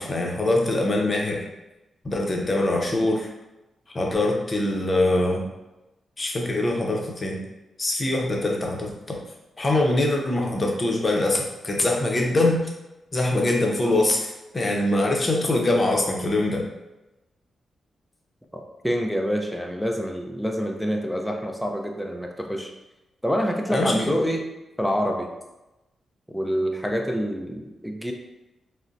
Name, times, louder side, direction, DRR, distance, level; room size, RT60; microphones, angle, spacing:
voice 1, 0.0-1.4 2.0-3.3 3.9-5.4 6.2-7.4 7.8-9.2 9.6-12.6 13.1-16.6 23.7-24.3, left 2 dB, 40° left, 0 dB, 0.7 m, -23 dB
voice 2, 18.5-22.7 23.2-24.4 24.8-25.3 26.3-28.1, equal, ahead, 1 dB, 0.5 m, -27 dB
3.8 x 2.1 x 2.5 m, 1.0 s
supercardioid pair, 40°, 0 cm